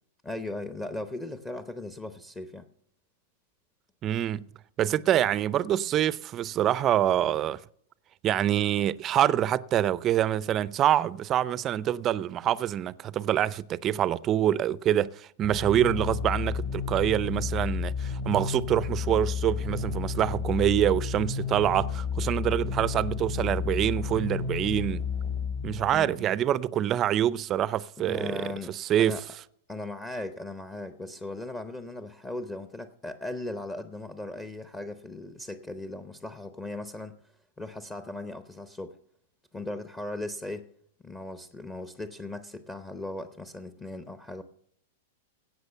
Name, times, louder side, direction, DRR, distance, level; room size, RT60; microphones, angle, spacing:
voice 1, 0.2-2.7 25.9-26.4 28.0-29.2 29.7-37.2 37.6-39.0 39.5-40.7 41.0-44.4, left 2 dB, 15° left, 0.7 m, -38 dB
voice 2, 4.0-4.5 4.8-7.6 8.2-25.1 25.6-29.2, right 11 dB, 30° right, 0.4 m, -26 dB
sound 1, 15.4-26.1, left 6 dB, 50° left, 2.8 m, -31 dB
16.5 x 6.1 x 6.8 m
hypercardioid pair, 130°, 0 cm